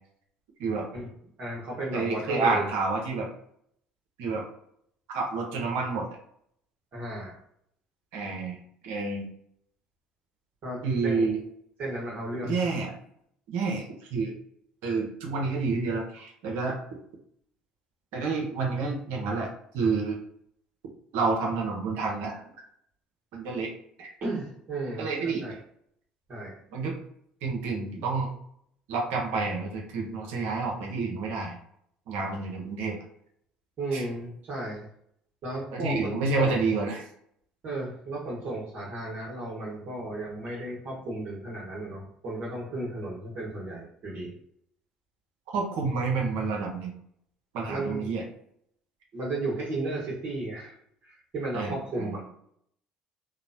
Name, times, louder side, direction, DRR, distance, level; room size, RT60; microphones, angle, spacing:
voice 1, 1.4-2.7 6.9-7.4 10.6-11.3 11.8-12.7 24.2-25.1 25.4-25.5 26.3-26.6 33.8-34.8 35.4-36.6 37.6-44.3 47.7-48.1 49.1-50.7 51.0-52.2, right 2 dB, 50° right, -5 dB, 1.2 m, -34 dB
voice 2, 1.9-3.3 4.2-4.4 5.1-6.1 8.1-8.6 8.8-9.3 10.8-11.4 12.4-12.9 13.5-13.8 14.1-14.3 14.8-16.8 18.1-19.5 19.7-20.2 21.1-22.4 23.3-23.7 24.0-24.1 25.0-25.5 26.7-27.0 27.4-28.3 28.9-31.6 32.1-33.0 33.9-34.0 35.7-37.0 45.5-46.9 47.5-48.2 51.5-52.2, right 4 dB, 70° right, 0 dB, 0.7 m, -29 dB
2.9 x 2.1 x 2.6 m, 0.69 s
hypercardioid pair, 65°, 4 cm